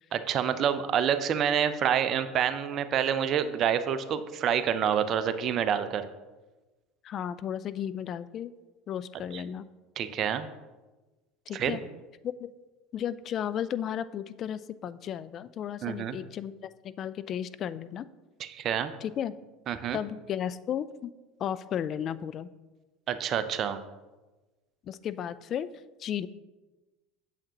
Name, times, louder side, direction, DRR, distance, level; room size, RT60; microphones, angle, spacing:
voice 1, 0.1-6.1 9.3-9.4 10.0-10.5 11.5-11.8 15.8-16.2 18.4-19.0 19.7-20.0 23.1-23.8, right 8 dB, 45° right, 11 dB, 0.6 m, -27 dB
voice 2, 7.0-8.5 8.9-9.6 11.5-11.8 12.2-12.5 12.9-18.1 19.0-19.3 19.9-21.1 21.4-22.5 24.9-25.7 26.0-26.3, left 9 dB, 45° left, 15 dB, 0.3 m, -34 dB
8.8 x 7.3 x 2.9 m, 1.2 s
hypercardioid pair, 70°, 0 cm